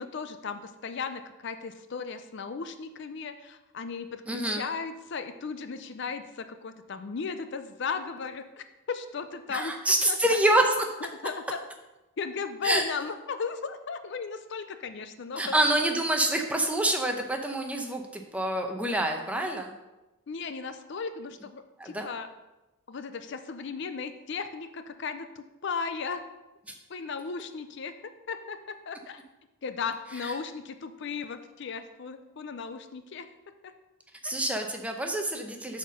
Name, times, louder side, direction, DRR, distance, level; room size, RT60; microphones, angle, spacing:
voice 1, 0.0-9.8 10.1-10.2 11.2-11.7 12.2-15.7 20.3-22.3 22.9-26.2 26.9-27.9 28.3-29.2 29.6-33.3 33.6-33.7 34.2-34.3, left 5 dB, 55° left, 9 dB, 0.4 m, -36 dB
voice 2, 4.3-4.6 9.5-10.9 12.6-12.8 15.4-19.7 21.8-22.1 30.2-30.3 34.2-35.8, right 1 dB, 5° right, 3 dB, 0.7 m, -27 dB
7.9 x 4.3 x 6.2 m, 1.0 s
head